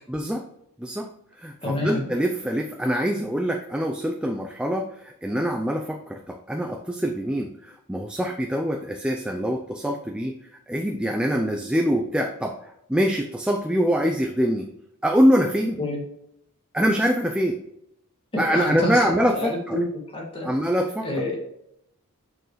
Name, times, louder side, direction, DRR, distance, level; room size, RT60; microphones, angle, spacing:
voice 1, 0.1-0.5 0.8-1.1 1.4-10.3 10.7-14.7 15.0-15.8 16.7-17.6 18.4-19.8 20.4-21.1, equal, 5° right, 2 dB, 0.4 m, -24 dB
voice 2, 1.6-2.1 15.8-16.0 18.3-19.0 19.3-19.9 20.1-20.5 21.0-21.4, left 1 dB, 25° left, -1 dB, 1.9 m, -27 dB
6.9 x 6.4 x 3.1 m, 0.77 s
head